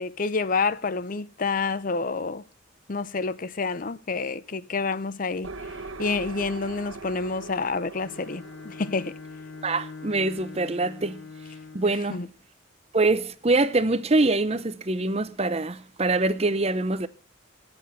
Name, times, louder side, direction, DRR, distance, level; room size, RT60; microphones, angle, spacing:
voice 1, 0.0-2.4 2.9-5.5 6.0-9.1 12.1-12.3, left 4 dB, 40° left, 0.6 m, -28 dB
sound 1, 5.4-11.0, right 3 dB, 90° right, 1.5 m, -42 dB
Bowed string instrument, 8.0-12.1, left 4 dB, 65° left, 0.9 m, -43 dB
voice 2, 9.6-11.2 11.7-12.2 12.9-17.1, right 2 dB, 30° right, 0.7 m, -24 dB
18.5 x 7.9 x 6.9 m
head